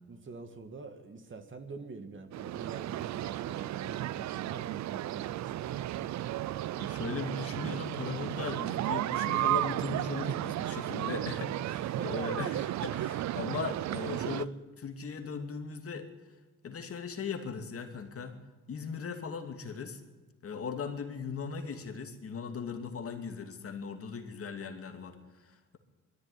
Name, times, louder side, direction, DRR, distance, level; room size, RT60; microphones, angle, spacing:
voice 1, 0.1-6.3 11.8-12.3, right 4 dB, 40° right, 7 dB, 2.3 m, -46 dB
sound 1, 2.3-14.4, right 14 dB, 65° right, 0.6 m, -34 dB
voice 2, 6.8-16.1 16.6-18.4 18.7-20.0 20.4-25.8, left 5 dB, 50° left, 5 dB, 2.6 m, -38 dB
21.0 x 13.5 x 10.0 m, 1.2 s
cardioid pair, 90°, 30 cm